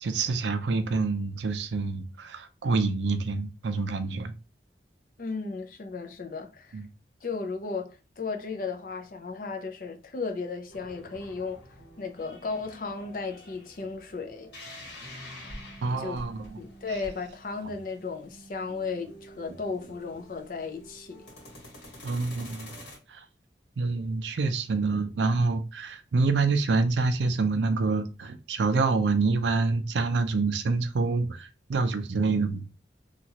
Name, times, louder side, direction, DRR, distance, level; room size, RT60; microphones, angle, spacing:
voice 1, 0.0-4.3 6.7-6.9 15.8-16.6 22.0-22.7 23.1-23.2 23.8-32.7, right 3 dB, 80° right, 0.5 m, -27 dB
voice 2, 5.2-6.8 7.2-11.6 12.0-14.5 16.0-16.2 16.6-21.3, left 4 dB, 50° left, 0.5 m, -35 dB
sound 1, 10.7-23.0, equal, 80° left, 1.5 m, -47 dB
3.0 x 2.4 x 2.8 m
head